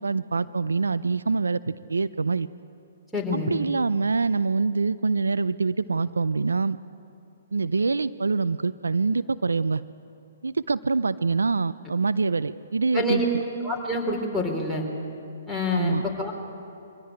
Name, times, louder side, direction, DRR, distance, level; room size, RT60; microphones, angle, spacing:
voice 1, 0.0-2.5 3.3-6.8 7.5-9.8 10.4-13.4 15.7-16.0, right 4 dB, 85° right, 16 dB, 0.5 m, -25 dB
voice 2, 3.1-3.5 12.9-13.3 13.6-14.9 15.5-16.3, left 1 dB, ahead, 0 dB, 4.0 m, -27 dB
24.0 x 16.5 x 8.9 m, 2.6 s
hypercardioid pair, 130°, 0 cm